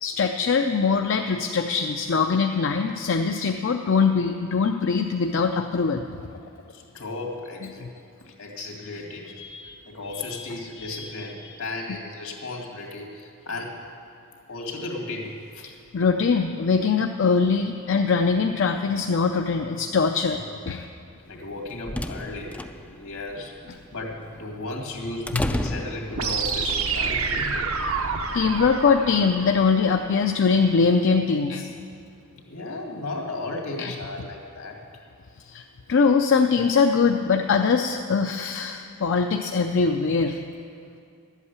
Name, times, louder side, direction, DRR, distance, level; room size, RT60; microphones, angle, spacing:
voice 1, 0.0-6.0 7.8-7.9 9.4-9.8 10.1-10.5 10.8-11.0 15.9-20.8 25.3-25.4 25.7-25.8 28.3-31.7 33.8-33.9 35.5-35.6 35.9-40.4, left 5 dB, 60° left, 4 dB, 0.5 m, -22 dB
voice 2, 6.7-7.9 8.3-9.4 9.9-13.8 14.5-15.6 20.3-20.5 21.2-23.5 23.9-27.7 32.3-34.8, left 2 dB, 80° left, 1 dB, 2.2 m, -35 dB
sound 1, 21.3-26.6, left 1 dB, 5° left, 0.3 m, -33 dB
sound 2, 26.1-30.1, right 5 dB, 70° right, 0.9 m, -28 dB
12.0 x 8.3 x 8.2 m, 2.5 s
head